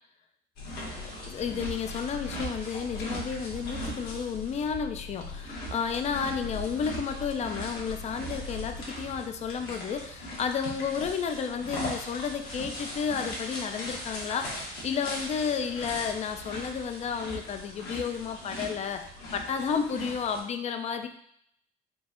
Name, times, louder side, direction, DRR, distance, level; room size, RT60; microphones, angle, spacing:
sound 1, 0.6-20.4, left 1 dB, 75° left, 1.7 m, -39 dB
voice 1, 1.3-21.1, left 6 dB, 40° left, 8 dB, 0.5 m, -32 dB
4.5 x 2.5 x 4.3 m, 0.71 s
cardioid pair, 110°, 17 cm